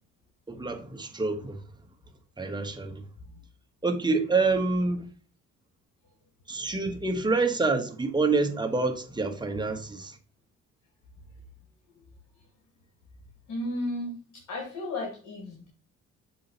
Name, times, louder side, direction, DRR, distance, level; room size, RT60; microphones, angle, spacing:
voice 1, 0.5-1.6 2.4-3.0 3.8-5.0 6.5-10.2, right 3 dB, 15° right, 1.2 m, -27 dB
voice 2, 13.5-15.7, left 1 dB, 70° left, 2.3 m, -35 dB
7.0 x 3.7 x 4.0 m
cardioid pair, 90°, 30 cm